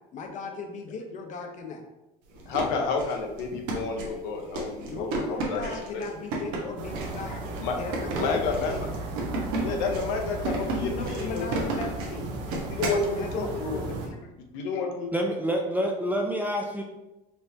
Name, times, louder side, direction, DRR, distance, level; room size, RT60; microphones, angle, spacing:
voice 1, 0.1-1.8 4.8-8.9 10.7-14.2, left 4 dB, 40° left, 4 dB, 0.7 m, -37 dB
sound 1, 2.3-13.1, right 2 dB, 90° right, 1.1 m, -33 dB
voice 2, 2.5-5.6 5.9-6.0 7.6-7.8 8.2-8.7 9.6-11.5 12.7-13.8 14.5-15.1, left 4 dB, 80° left, 2 dB, 0.8 m, -30 dB
sound 2, 6.8-14.1, right 2 dB, 70° right, 0.8 m, -36 dB
voice 3, 15.1-16.8, equal, 10° right, 1 dB, 0.3 m, -27 dB
4.4 x 3.4 x 2.7 m, 1.0 s
cardioid pair, 135°, 20 cm